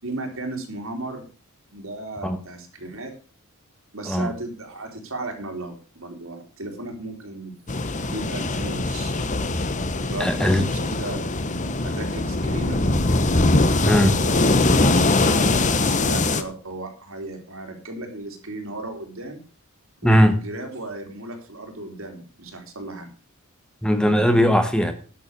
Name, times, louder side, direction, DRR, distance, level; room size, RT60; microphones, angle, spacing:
voice 1, 0.0-1.2 1.7-3.1 3.9-7.5 7.9-9.2 10.1-11.2 11.8-12.8 14.1-19.4 20.0-23.1, right 2 dB, 70° right, 3.4 m, -35 dB
sound 1, 7.7-16.4, left 2 dB, 35° left, 1.0 m, -22 dB
voice 2, 10.2-10.6 13.8-14.2 20.0-20.4 23.8-24.9, equal, 5° left, 1.0 m, -18 dB
11.0 x 7.1 x 6.5 m
head